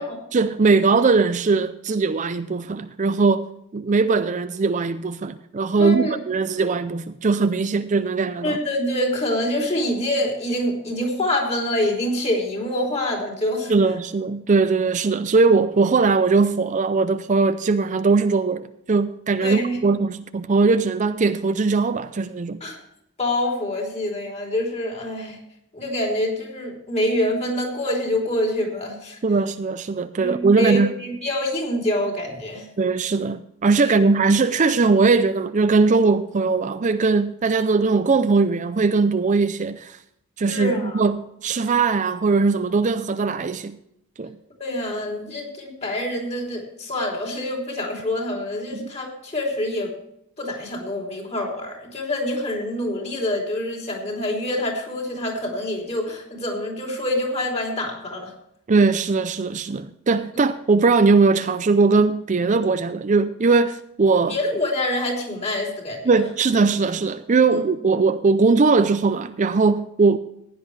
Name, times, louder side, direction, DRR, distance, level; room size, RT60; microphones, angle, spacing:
voice 1, 0.3-3.5 3.7-8.6 13.7-22.6 29.2-31.0 32.8-40.0 40.4-43.8 44.2-44.4 48.7-48.9 58.7-64.3 66.1-70.2, right 4 dB, 35° right, 0.4 m, -20 dB
voice 2, 5.8-6.1 8.4-13.7 19.4-19.8 22.6-22.8 23.2-25.4 25.7-29.2 30.2-32.7 33.8-33.9 40.5-41.0 44.6-49.9 50.4-58.3 64.3-66.2 67.5-67.6, left 1 dB, 30° left, 3.3 m, -26 dB
15.5 x 10.0 x 3.3 m
head